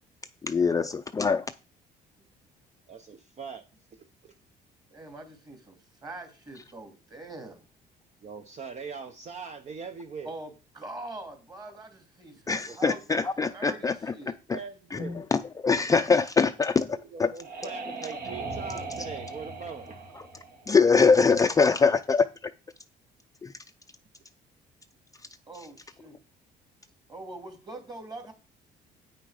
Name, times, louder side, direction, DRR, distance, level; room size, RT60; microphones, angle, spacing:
voice 1, 0.4-1.4 12.5-14.3 14.9-17.3 20.7-22.3 23.4-23.5, left 5 dB, 20° left, 0.5 m, -23 dB
voice 2, 2.9-3.6 4.2-4.3 8.2-10.3 12.7-13.0 14.1-14.2 14.5-15.3 17.1-20.2, right 5 dB, 45° right, 0.9 m, -41 dB
voice 3, 4.9-7.6 10.2-13.2 13.5-14.4 25.5-26.2 27.1-28.3, right 2 dB, 25° right, 2.7 m, -43 dB
sound 1, 16.8-21.4, right 3 dB, 60° right, 2.1 m, -39 dB
8.9 x 6.1 x 5.0 m
cardioid pair, 110°, 17 cm